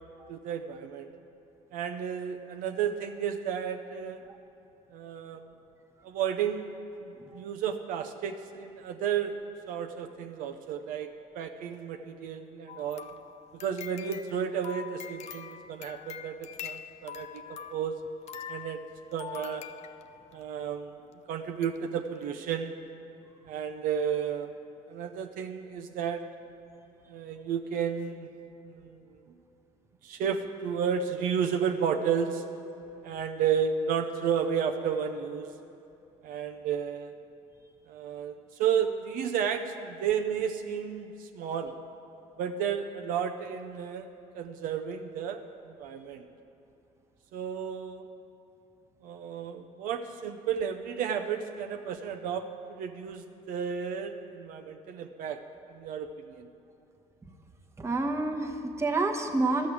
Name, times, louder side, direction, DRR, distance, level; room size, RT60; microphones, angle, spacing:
voice 1, 0.3-1.1 1.7-4.2 4.9-5.5 6.0-6.6 7.0-9.3 9.7-13.1 13.6-18.0 18.5-18.8 19.1-19.7 20.3-21.0 21.3-22.7 23.5-24.6 24.9-26.2 27.1-28.3 28.6-29.1 30.0-32.4 33.0-35.5 36.2-37.1 37.9-41.8 42.4-44.1 44.3-46.2 47.3-48.1 49.0-55.4 55.7-56.5, right 7 dB, 70° right, 6 dB, 0.7 m, -32 dB
sound 1, 12.7-20.4 21.1-21.2 21.6-21.8 22.1-22.2, left 9 dB, 50° left, 0.5 m, -44 dB
voice 2, 57.8-59.7, right 2 dB, 20° right, 2 dB, 1.1 m, -28 dB
12.0 x 6.4 x 8.4 m, 2.8 s
supercardioid pair, 90°, 15 cm